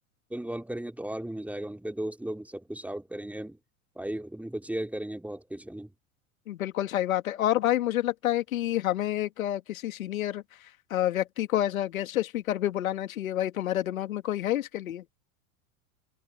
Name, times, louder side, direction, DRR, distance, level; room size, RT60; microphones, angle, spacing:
voice 1, 0.3-3.6 3.9-5.9, right 1 dB, 5° right, 3.4 m, -36 dB
voice 2, 6.5-10.4 10.9-15.0, left 13 dB, 75° left, 2.3 m, -28 dB
hypercardioid pair, 90°, 41 cm